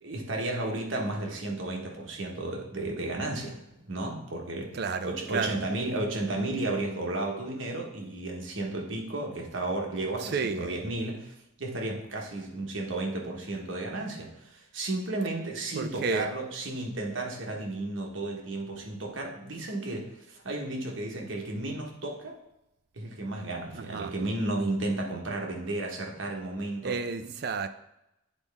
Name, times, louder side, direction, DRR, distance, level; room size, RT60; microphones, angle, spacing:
voice 1, 0.0-3.6 3.8-4.8 5.0-22.4 22.9-27.0, right 2 dB, 70° right, 0 dB, 1.3 m, -33 dB
voice 2, 4.7-5.6 10.2-10.7 15.8-16.3 23.7-24.1 26.8-27.7, right 4 dB, 50° right, 9 dB, 0.4 m, -31 dB
9.0 x 4.1 x 3.5 m, 0.88 s
head